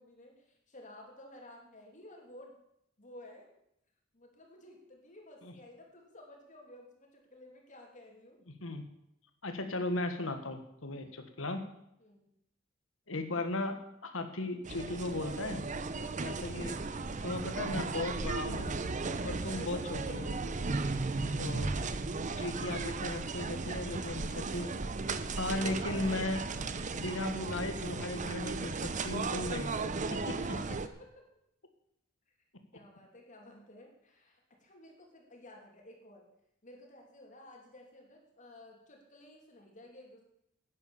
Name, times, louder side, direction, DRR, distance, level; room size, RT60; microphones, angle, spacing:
voice 1, 0.0-2.6 3.0-3.5 4.1-8.4 10.9-11.2 12.0-12.3 30.4-31.3 32.7-36.2 36.6-40.2, left 1 dB, 40° left, 1 dB, 3.0 m, -54 dB
voice 2, 9.4-11.6 13.1-13.7 14.0-15.6 16.2-16.8 17.2-18.7 19.2-20.4 21.4-21.7 22.4-24.7 25.3-26.4 26.9-29.7 30.1-30.4, left 2 dB, 75° left, 7 dB, 1.6 m, -36 dB
sound 1, 14.6-30.9, right 3 dB, 40° right, 0.8 m, -36 dB
11.5 x 9.6 x 7.2 m, 0.77 s
head